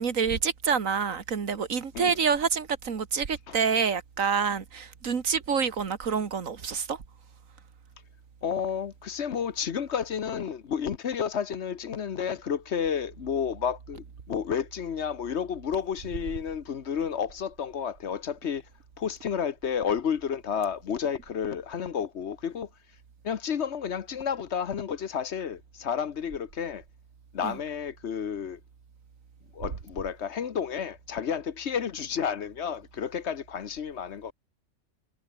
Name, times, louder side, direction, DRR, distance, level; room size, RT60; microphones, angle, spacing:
voice 1, 0.0-7.0 27.4-27.5, right 6 dB, 85° right, 2.0 m, -27 dB
voice 2, 8.4-18.6 19.0-22.7 23.2-26.8 27.3-28.6 29.5-34.3, left 7 dB, 60° left, 1.2 m, -31 dB
omnidirectional pair, 1.4 m